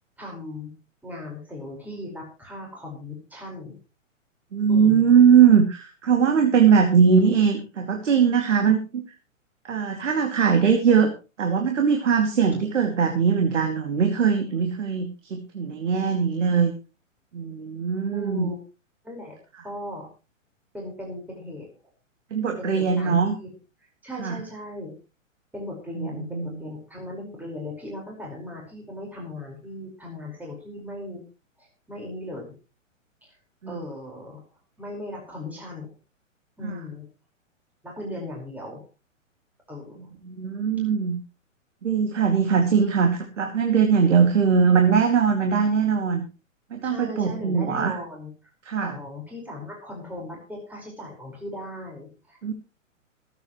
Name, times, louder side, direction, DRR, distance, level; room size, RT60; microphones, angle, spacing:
voice 1, 0.2-0.7 1.0-3.8 4.7-5.1 18.1-18.6 19.0-19.3 19.6-20.1 20.7-21.7 22.6-23.5 23.8-24.9 25.5-31.2 31.6-32.5 33.2-33.4 33.7-34.4 34.8-35.9 36.6-37.1 37.8-38.8 39.7-40.1 46.8-48.5 48.8-52.5, left 1 dB, 5° right, -2 dB, 5.0 m, -37 dB
voice 2, 4.5-9.0 9.7-11.1 11.4-16.7 17.3-18.5 22.3-23.4 24.2-24.3 26.0-26.1 26.3-26.5 33.6-33.8 40.2-41.2 41.8-46.2 46.7-48.0 48.7-48.9 52.4-52.5, right 6 dB, 65° right, 3 dB, 2.6 m, -20 dB
26.0 x 8.8 x 3.2 m, 0.32 s
figure-of-eight pair, 120°, 40 cm